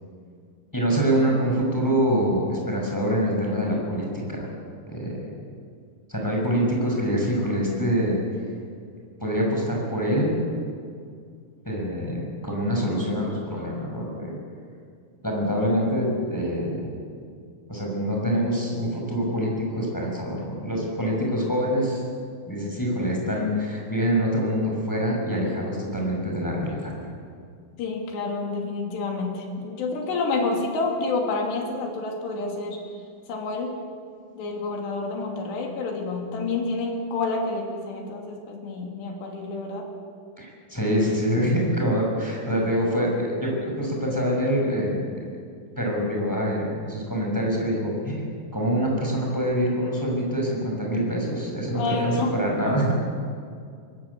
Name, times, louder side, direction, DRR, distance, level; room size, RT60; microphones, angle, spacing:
voice 1, 0.7-4.5 4.9-5.2 6.1-8.2 9.2-10.3 11.6-14.3 15.2-16.8 17.7-22.0 22.4-26.9 40.4-45.3 45.8-52.9, equal, 5° left, -1 dB, 5.7 m, -25 dB
voice 2, 27.8-32.8 33.3-33.8 34.4-39.9 51.7-52.4 52.7-52.9, left 3 dB, 65° left, 1 dB, 5.0 m, -29 dB
23.0 x 20.0 x 8.4 m, 2.2 s
omnidirectional pair, 5.2 m